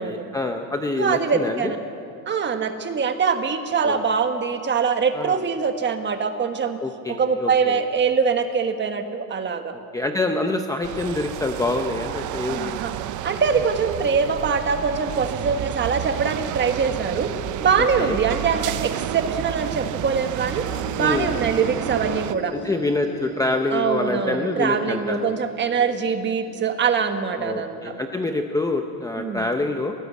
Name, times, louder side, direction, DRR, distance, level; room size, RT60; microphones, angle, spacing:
voice 1, 0.0-1.7 3.8-4.0 5.1-5.4 6.8-7.8 9.7-12.8 17.8-18.2 21.0-21.3 22.5-25.2 27.4-29.9, left 2 dB, 10° left, 4 dB, 0.7 m, -26 dB
voice 2, 1.0-1.8 2.3-6.8 7.1-9.7 12.5-12.9 13.2-17.3 17.6-20.6 21.0-22.5 23.7-27.9 29.2-29.4, right 6 dB, 25° right, 7 dB, 1.4 m, -23 dB
sound 1, 10.8-22.3, right 12 dB, 45° right, 0.6 m, -30 dB
sound 2, 20.3-28.0, left 1 dB, 40° left, 3.3 m, -40 dB
22.5 x 18.5 x 8.3 m, 2.6 s
cardioid pair, 170°, 44 cm